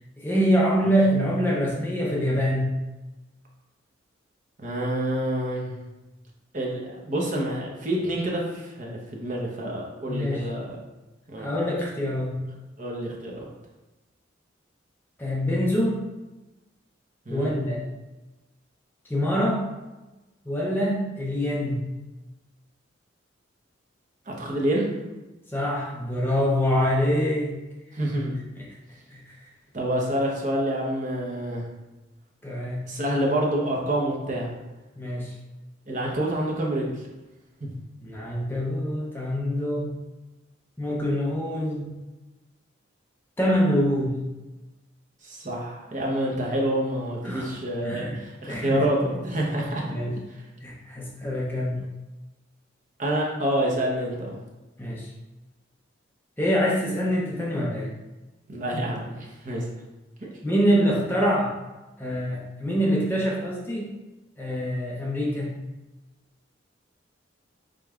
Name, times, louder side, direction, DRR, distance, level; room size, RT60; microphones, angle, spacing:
voice 1, 0.2-2.7 10.1-10.4 11.4-12.4 15.2-16.0 17.3-17.8 19.1-19.7 20.5-21.8 25.5-27.5 28.5-28.6 29.1-29.2 32.4-32.9 35.0-35.3 38.0-39.9 40.8-41.9 43.4-44.1 47.2-47.5 47.8-48.2 48.5-48.8 49.4-49.5 49.8-50.2 50.6-51.8 54.8-55.1 56.4-57.9 60.4-61.6 62.0-63.9 64.4-65.5, equal, 10° left, -4 dB, 0.6 m, -25 dB
voice 2, 4.6-5.8 6.5-10.8 11.3-11.5 12.8-13.5 17.3-17.5 24.3-24.9 27.9-28.3 29.7-31.7 32.9-34.6 35.9-36.9 37.6-37.7 45.2-49.8 51.8-51.9 53.0-54.4 58.5-59.7, right 1 dB, 40° right, -2 dB, 0.9 m, -27 dB
4.9 x 4.1 x 2.4 m, 1.1 s
head